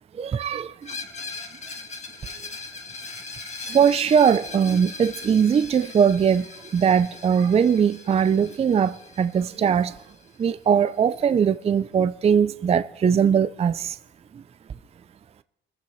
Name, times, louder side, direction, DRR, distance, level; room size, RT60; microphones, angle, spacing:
voice 1, 0.2-0.7 3.7-6.4 6.7-9.9 10.4-13.9, right 7 dB, 30° right, 0.4 m, -20 dB
Screech, 0.8-10.5, left 4 dB, 35° left, 1.9 m, -40 dB
25.0 x 14.5 x 3.1 m
cardioid pair, 90°, 20 cm